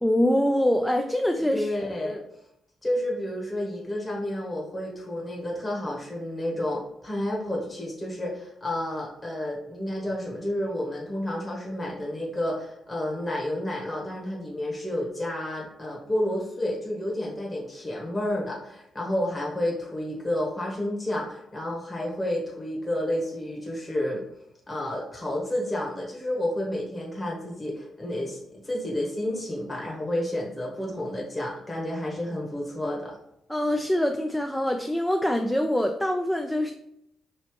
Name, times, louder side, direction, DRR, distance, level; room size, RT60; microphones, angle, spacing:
voice 1, 0.0-1.7 2.0-2.2 33.5-36.7, left 1 dB, 5° left, 3 dB, 0.3 m, -24 dB
voice 2, 1.5-2.2 2.8-24.2 24.7-33.2, left 1 dB, 25° left, -3 dB, 1.1 m, -30 dB
3.2 x 2.8 x 3.0 m, 0.78 s
supercardioid pair, 55°, 0 cm